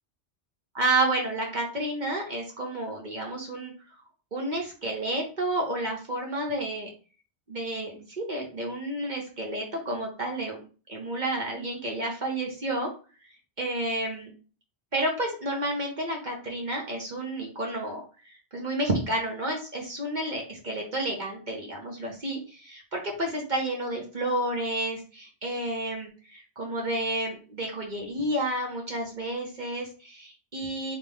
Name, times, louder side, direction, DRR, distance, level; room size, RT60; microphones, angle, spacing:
voice 1, 0.7-3.7 4.3-6.9 7.5-10.6 10.9-12.9 13.6-14.3 14.9-31.0, right 1 dB, 45° right, 0 dB, 1.1 m, -30 dB
4.0 x 3.5 x 3.5 m, 0.36 s
omnidirectional pair, 1.1 m